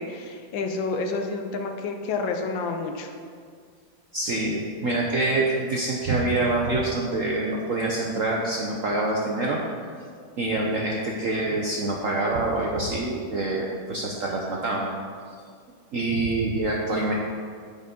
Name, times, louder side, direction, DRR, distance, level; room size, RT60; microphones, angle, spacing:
voice 1, 0.0-3.1, left 3 dB, 75° left, 4 dB, 1.4 m, -29 dB
voice 2, 4.1-9.6 10.4-14.9 15.9-17.1, right 2 dB, 65° right, -2 dB, 0.8 m, -26 dB
8.9 x 5.1 x 5.2 m, 2.1 s
omnidirectional pair, 2.2 m